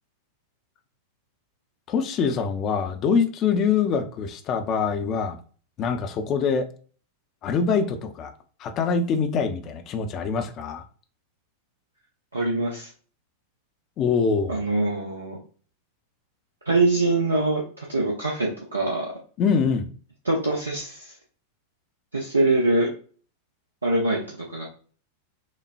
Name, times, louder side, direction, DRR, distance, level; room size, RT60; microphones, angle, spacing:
voice 1, 1.9-5.4 5.8-6.7 7.4-8.3 8.6-10.8 14.0-14.6 19.4-19.9, left 5 dB, 35° left, 7 dB, 0.6 m, -24 dB
voice 2, 12.3-12.9 14.5-15.4 16.7-19.1 20.2-21.1 22.1-22.9 23.8-24.7, right 2 dB, 80° right, -2 dB, 0.7 m, -24 dB
6.1 x 2.2 x 2.5 m, 0.42 s
figure-of-eight pair, 90°, 0 cm